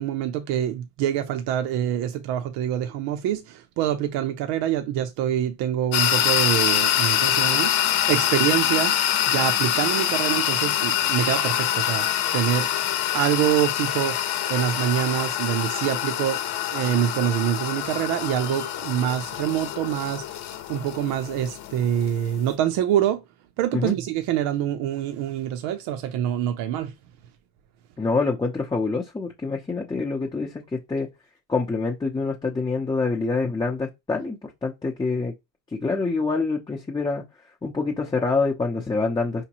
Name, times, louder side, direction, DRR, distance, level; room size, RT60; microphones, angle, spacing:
voice 1, 0.0-7.7 8.1-9.0 9.3-12.1 12.3-12.7 13.1-14.2 14.5-16.4 16.7-20.4 20.7-23.2 23.6-26.9, right 11 dB, 65° right, 0.8 m, -25 dB
sound 1, 5.9-22.5, left 11 dB, 60° left, 0.9 m, -25 dB
voice 2, 28.0-31.1 31.5-35.3 35.7-37.2 37.6-39.5, left 3 dB, 10° left, 0.7 m, -26 dB
5.1 x 2.9 x 2.9 m
supercardioid pair, 115°, 44 cm